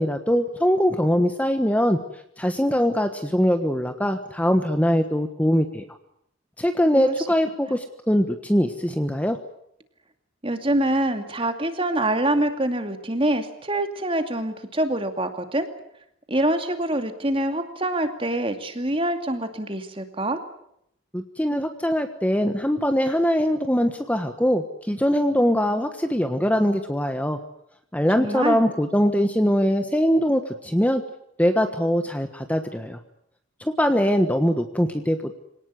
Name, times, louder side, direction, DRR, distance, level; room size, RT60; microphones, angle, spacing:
voice 1, 0.0-2.0 2.4-5.8 6.6-9.4 21.1-27.4 27.9-31.0 31.4-33.0 33.6-35.3, equal, 5° left, 7 dB, 1.3 m, -22 dB
voice 2, 10.4-15.7 16.3-20.4 28.2-28.6, right 1 dB, 25° right, 7 dB, 2.4 m, -25 dB
26.0 x 18.5 x 9.7 m, 0.76 s
head